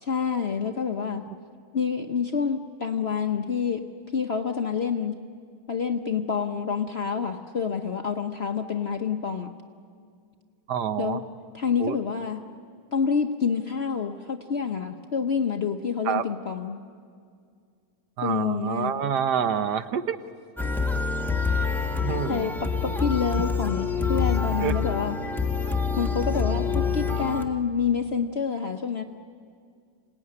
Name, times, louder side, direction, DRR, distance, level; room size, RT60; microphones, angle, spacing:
voice 1, 0.0-1.3 1.7-3.8 4.1-5.2 5.7-9.5 11.0-11.2 11.5-12.4 12.9-16.8 18.2-18.9 22.0-25.2 26.0-29.0, left 6 dB, 50° left, 6 dB, 0.8 m, -28 dB
voice 2, 10.7-11.2 11.8-12.0 16.0-16.2 18.2-20.2 21.9-22.5 22.9-23.0 24.6-24.8, right 8 dB, 70° right, 10 dB, 1.4 m, -27 dB
sound 1, 20.6-27.4, left 5 dB, ahead, 0.8 m, -26 dB
26.0 x 18.5 x 9.7 m, 2.2 s
omnidirectional pair, 1.9 m